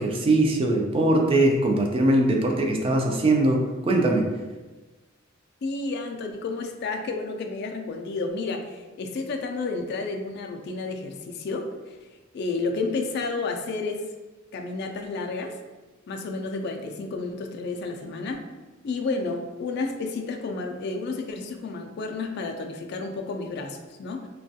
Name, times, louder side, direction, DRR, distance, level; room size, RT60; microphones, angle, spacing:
voice 1, 0.0-4.2, right 2 dB, 30° right, 2 dB, 0.3 m, -21 dB
voice 2, 5.6-12.0 12.3-14.0 14.5-15.6 16.1-18.4 18.8-24.3, left 3 dB, 55° left, 4 dB, 0.3 m, -31 dB
3.0 x 2.2 x 2.7 m, 1.2 s
head